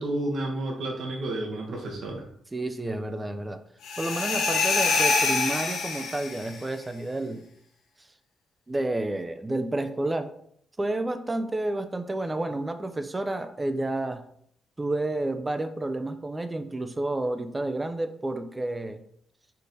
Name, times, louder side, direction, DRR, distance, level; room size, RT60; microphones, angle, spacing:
voice 1, 0.0-2.3, right 1 dB, 60° right, 0 dB, 0.8 m, -31 dB
voice 2, 2.5-3.6 4.0-7.5 8.7-10.3 10.8-14.2 14.8-19.0, right 2 dB, 15° right, 8 dB, 0.3 m, -30 dB
sound 1, 3.8-6.6, left 4 dB, 90° left, 0.7 m, -25 dB
4.3 x 3.2 x 2.6 m, 0.67 s
cardioid pair, 145°, 0 cm